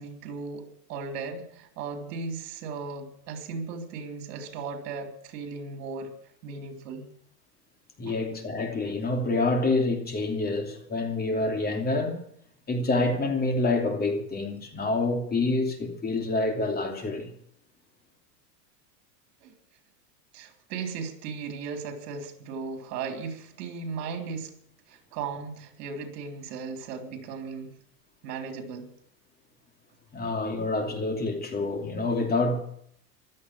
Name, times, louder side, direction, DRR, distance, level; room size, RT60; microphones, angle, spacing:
voice 1, 0.0-6.1 6.4-7.1 8.1-8.2 19.4-19.5 20.3-24.5 24.9-27.7 28.2-28.9, right 5 dB, 70° right, 3.7 m, -36 dB
voice 2, 8.0-12.2 12.7-17.3 30.1-32.6, left 2 dB, 20° left, 2.7 m, -27 dB
16.0 x 12.5 x 6.1 m
supercardioid pair, 140°, 48 cm